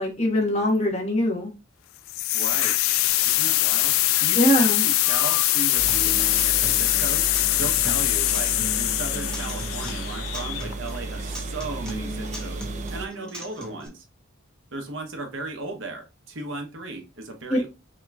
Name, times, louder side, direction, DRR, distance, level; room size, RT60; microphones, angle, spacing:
voice 1, 0.0-1.5 4.3-4.8 17.5-17.6, equal, 30° left, 1.3 m, -22 dB
sound 1, 2.1-11.0, left 16 dB, 80° left, 0.3 m, -23 dB
voice 2, 2.3-2.8 3.2-3.9 4.2-7.3 7.6-12.6 12.9-14.0 14.7-17.7, right 2 dB, 65° right, 1.0 m, -36 dB
sound 2, 5.7-13.1, right 2 dB, 35° right, 0.4 m, -34 dB
Acoustic guitar, 5.9-13.9, equal, 5° left, 0.9 m, -38 dB
5.7 x 2.9 x 2.4 m
head